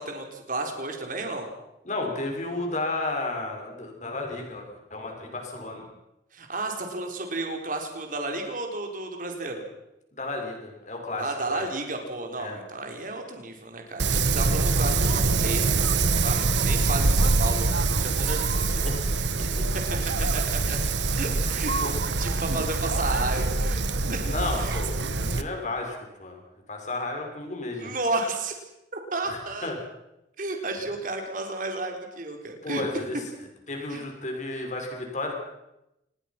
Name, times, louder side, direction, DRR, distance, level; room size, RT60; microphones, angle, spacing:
voice 1, 0.0-1.5 6.3-9.6 11.2-18.9 19.4-19.6 20.2-20.8 21.1-21.7 22.2-23.8 24.1-24.3 24.6-24.7 27.8-28.6 29.1-29.7 30.4-32.9 33.9-34.0, right 2 dB, 50° right, 3 dB, 4.0 m, -32 dB
voice 2, 1.8-4.6 4.9-5.9 10.1-11.6 12.4-12.6 18.8-19.0 20.4-20.5 21.5-22.0 24.2-26.4 26.7-27.9 29.2-29.8 32.6-33.2 33.7-35.3, left 2 dB, 40° left, 2 dB, 6.1 m, -33 dB
Wind, 14.0-25.4, right 3 dB, 80° right, 1.4 m, -24 dB
27.5 x 20.5 x 6.0 m, 0.89 s
head